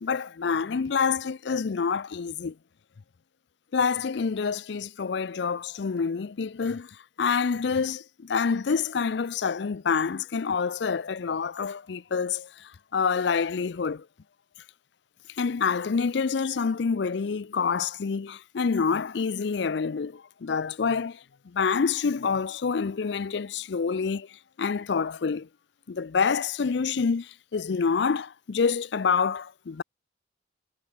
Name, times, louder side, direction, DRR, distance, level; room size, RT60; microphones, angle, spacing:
voice 1, 0.0-2.5 3.7-6.9 7.2-12.5 12.9-14.0 15.4-21.2 21.5-24.3 24.6-25.5 25.9-29.8, left 5 dB, 60° left, 0.5 m, -27 dB
head